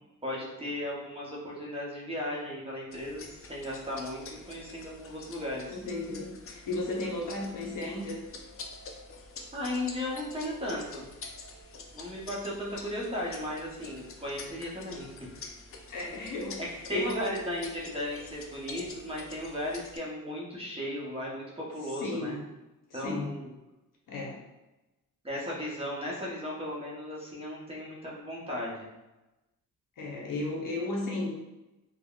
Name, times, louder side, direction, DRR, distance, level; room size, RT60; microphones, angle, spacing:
voice 1, 0.2-4.2 4.5-5.8 9.5-11.1 11.9-15.1 16.9-22.4 22.9-23.5 25.2-28.9, left 1 dB, 15° right, -5 dB, 0.8 m, -36 dB
sound 1, 2.9-20.0, left 3 dB, 40° left, 0.4 m, -47 dB
voice 2, 5.7-8.2 15.9-17.2 21.8-22.4 22.9-23.4 24.1-24.4 30.0-31.3, left 2 dB, 65° left, -2 dB, 0.8 m, -34 dB
3.6 x 2.2 x 2.3 m, 1.0 s
cardioid pair, 105°, 34 cm